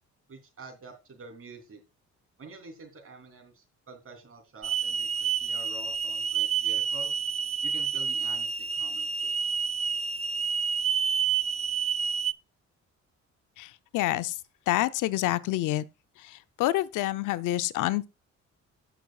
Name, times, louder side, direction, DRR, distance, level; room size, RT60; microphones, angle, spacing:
voice 1, 0.3-1.8 2.4-7.1 7.6-9.3, right 3 dB, 45° right, 3.3 m, -47 dB
Hiss / Alarm, 4.6-12.3, right 6 dB, 20° right, 0.5 m, -29 dB
voice 2, 13.9-14.3 14.7-15.8 16.6-18.1, left 15 dB, 90° left, 0.6 m, -27 dB
17.5 x 6.1 x 2.4 m
cardioid pair, 90°, 30 cm